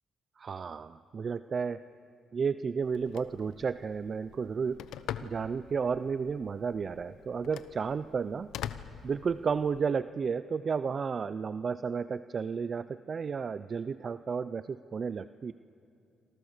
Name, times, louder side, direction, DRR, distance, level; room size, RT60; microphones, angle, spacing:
voice 1, 0.4-1.8 2.3-4.8 5.2-8.5 9.0-15.5, right 6 dB, 45° right, 13 dB, 0.5 m, -32 dB
Telephone, 2.8-9.8, left 10 dB, 85° left, 0.9 m, -45 dB
28.5 x 25.5 x 6.6 m, 2.6 s
cardioid pair, 90°, 0 cm